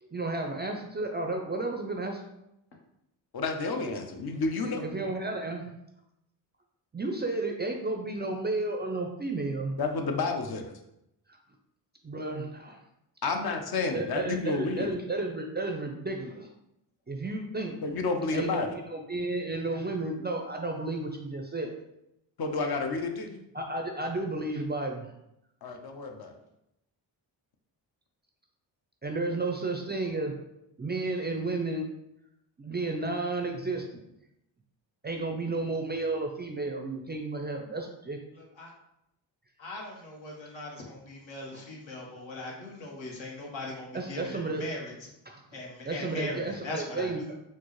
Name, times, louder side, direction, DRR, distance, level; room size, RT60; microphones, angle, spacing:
voice 1, 0.0-2.2 4.7-5.7 6.9-9.8 12.0-12.8 13.9-16.5 17.1-17.8 18.3-21.8 23.5-25.1 29.0-30.3 30.8-31.8 32.6-34.0 35.0-38.2 41.5-41.7 43.9-44.7 45.3-45.4 45.8-47.4, right 2 dB, 25° right, 3 dB, 0.4 m, -32 dB
voice 2, 3.3-4.9 9.8-10.7 13.2-15.0 17.8-18.7 22.4-23.4 25.6-26.3, left 3 dB, 50° left, 4 dB, 0.7 m, -30 dB
voice 3, 39.6-44.3 44.6-44.9 45.5-47.3, left 2 dB, 70° left, -1 dB, 1.1 m, -39 dB
4.3 x 2.0 x 3.0 m, 0.84 s
supercardioid pair, 45°, 48 cm